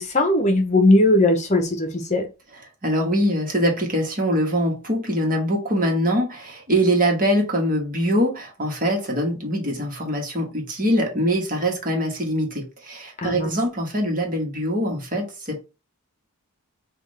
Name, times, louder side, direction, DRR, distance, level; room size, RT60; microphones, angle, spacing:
voice 1, 0.0-2.3 13.2-13.5, left 1 dB, 30° left, 0.8 m, -19 dB
voice 2, 2.8-15.6, equal, 40° right, 1.4 m, -23 dB
6.0 x 2.5 x 3.2 m
head